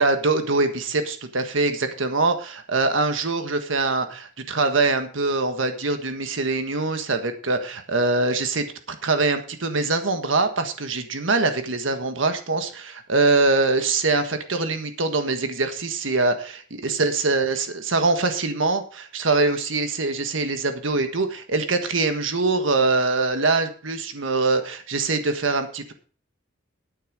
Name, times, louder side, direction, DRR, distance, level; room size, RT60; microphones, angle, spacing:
voice 1, 0.0-8.7 9.0-25.9, right 3 dB, 90° right, 7 dB, 1.5 m, -23 dB
10.5 x 9.0 x 5.0 m, 0.40 s
head